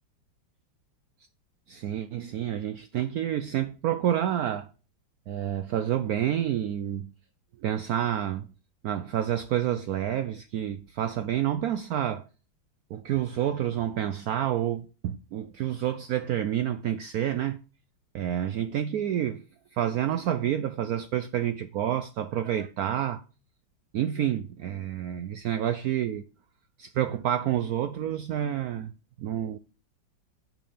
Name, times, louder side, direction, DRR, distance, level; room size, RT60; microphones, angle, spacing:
voice 1, 1.7-4.7 5.3-7.1 7.6-8.5 8.8-12.3 12.9-17.6 18.1-19.4 19.7-23.2 23.9-26.2 26.8-28.9 29.2-29.6, right 11 dB, 85° right, 0.8 m, -29 dB
7.7 x 5.2 x 5.6 m
omnidirectional pair, 2.1 m